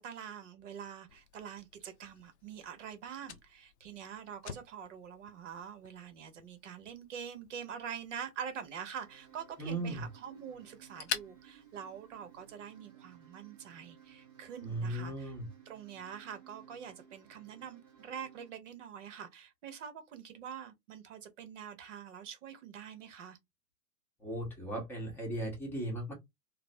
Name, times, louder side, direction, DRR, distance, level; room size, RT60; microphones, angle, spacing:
voice 1, 0.0-15.3 15.7-23.4, right 8 dB, 50° right, 0.8 m, -45 dB
Fire, 1.1-12.6, left 8 dB, 45° left, 0.5 m, -48 dB
sound 1, 9.0-18.5, right 9 dB, 15° right, 0.5 m, -58 dB
voice 2, 9.6-10.1 14.6-15.5 24.2-26.1, right 1 dB, 5° left, 0.9 m, -37 dB
3.0 x 2.0 x 2.6 m
figure-of-eight pair, 105°, 47 cm